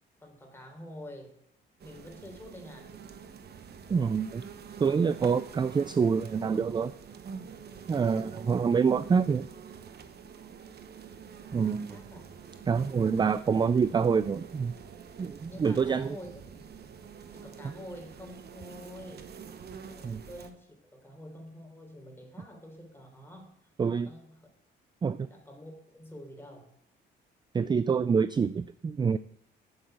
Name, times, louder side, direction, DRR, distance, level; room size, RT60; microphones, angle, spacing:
voice 1, 0.2-1.4 1.8-2.9 11.3-12.4 15.5-16.3 17.3-19.3 19.9-23.5 24.0-24.5 25.3-26.7, left 1 dB, 10° left, 2 dB, 3.6 m, -47 dB
sound 1, 1.8-20.5, right 6 dB, 55° right, 1.1 m, -47 dB
voice 2, 3.9-4.4 4.8-6.9 7.9-9.5 11.5-12.0 12.7-14.7 15.2-16.2 17.6-17.7 20.0-20.2 23.8-24.1 25.0-25.3 27.5-29.2, right 6 dB, 20° right, 15 dB, 0.4 m, -26 dB
8.0 x 7.7 x 7.7 m, 0.71 s
cardioid pair, 90°, 20 cm